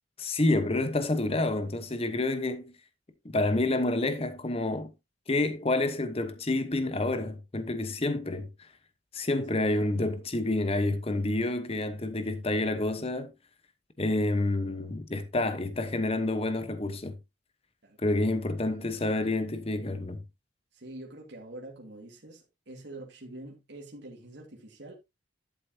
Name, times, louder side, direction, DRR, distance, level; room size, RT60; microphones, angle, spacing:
voice 1, 0.2-2.7 3.2-4.9 5.3-8.7 9.1-13.3 14.0-17.2 18.0-20.2, left 2 dB, 30° left, 1.0 m, -28 dB
voice 2, 17.8-18.4 18.7-19.2 20.7-24.9, right 2 dB, 65° right, 2.2 m, -46 dB
11.5 x 7.6 x 2.8 m
head